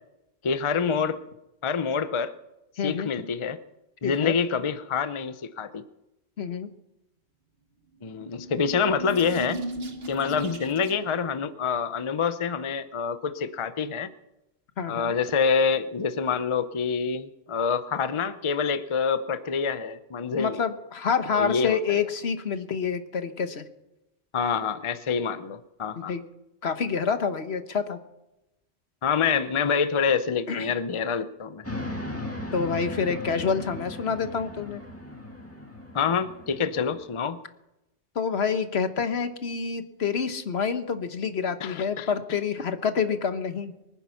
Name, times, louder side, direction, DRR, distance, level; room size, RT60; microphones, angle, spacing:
voice 1, 0.4-1.2 1.6-2.3 2.8-3.6 4.0-5.8 8.0-9.6 10.1-14.1 14.9-20.6 21.3-22.1 24.3-26.1 29.0-31.6 35.9-37.4 41.6-42.1, left 6 dB, 35° left, 12 dB, 0.6 m, -26 dB
voice 2, 2.8-3.3 4.0-4.3 6.4-6.7 14.8-15.1 20.4-23.6 26.0-26.2 26.6-28.0 30.5-30.7 32.5-34.8 38.1-43.7, left 6 dB, 70° left, 9 dB, 1.3 m, -27 dB
sound 1, 8.0-11.2, right 1 dB, 60° right, 1.7 m, -37 dB
sound 2, 31.6-37.1, left 1 dB, 10° left, 2.0 m, -37 dB
23.5 x 9.9 x 5.8 m, 0.93 s
omnidirectional pair, 1.1 m